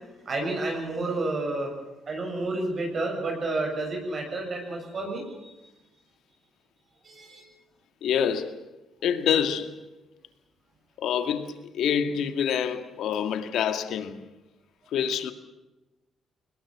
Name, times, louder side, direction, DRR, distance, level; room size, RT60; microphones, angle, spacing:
voice 1, 0.3-1.7 2.1-5.5 7.0-7.4, right 2 dB, 45° right, 7.4 m, -30 dB
voice 2, 8.0-8.6 9.0-9.8 11.0-14.2 14.9-15.3, left 8 dB, 75° left, 1.9 m, -26 dB
21.5 x 20.0 x 7.4 m
cardioid pair, 90°, 0 cm